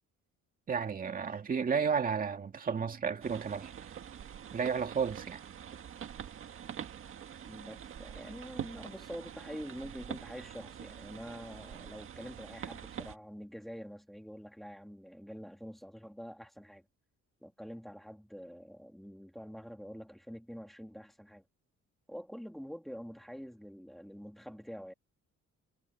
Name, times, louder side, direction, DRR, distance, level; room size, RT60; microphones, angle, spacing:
voice 1, 0.7-3.7 4.5-5.4, right 6 dB, 30° right, 2.1 m, -32 dB
sound 1, 3.2-13.2, right 9 dB, 45° right, 1.8 m, -45 dB
voice 2, 7.5-16.9 17.4-21.4 22.1-24.9, equal, ahead, 2.4 m, -46 dB
cardioid pair, 175°, 29 cm